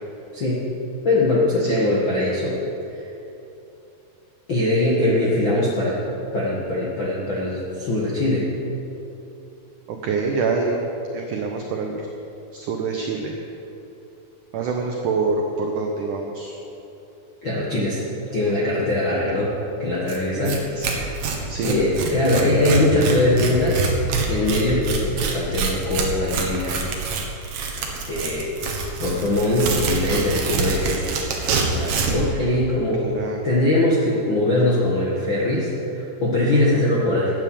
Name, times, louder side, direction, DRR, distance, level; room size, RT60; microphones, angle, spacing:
voice 1, 0.3-0.6 1.0-2.6 2.9-3.0 4.5-6.0 6.3-8.5 17.4-18.0 18.3-19.5 19.8-20.6 20.9-23.8 24.3-26.8 27.9-33.0 33.4-37.3, left 1 dB, 65° left, -6 dB, 1.2 m, -22 dB
voice 2, 9.9-10.9 11.1-12.1 12.5-13.3 14.5-16.5 20.3-21.1 21.5-21.8 33.0-33.4, right 4 dB, 90° right, 2 dB, 1.7 m, -26 dB
Tearing, 20.1-20.2 20.5-20.6 20.8-32.3, right 4 dB, 60° right, 1.9 m, -25 dB
12.5 x 8.5 x 8.6 m, 3.0 s
omnidirectional pair, 5.0 m